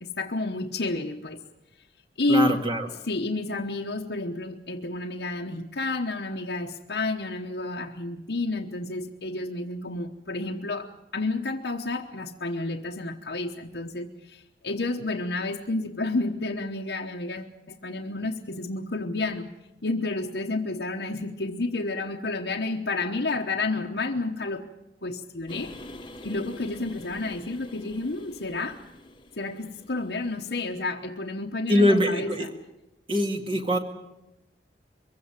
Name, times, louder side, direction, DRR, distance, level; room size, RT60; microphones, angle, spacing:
voice 1, 0.0-1.4 2.2-2.5 3.1-19.5 19.8-24.6 25.0-25.7 26.2-28.8 29.4-32.5, left 2 dB, 70° left, -1 dB, 1.1 m, -30 dB
voice 2, 2.3-2.9 31.7-32.5 33.1-33.8, equal, 30° right, 5 dB, 2.1 m, -23 dB
sound 1, 25.5-30.9, left 1 dB, 30° left, 1.2 m, -46 dB
23.5 x 16.0 x 9.0 m, 0.93 s
head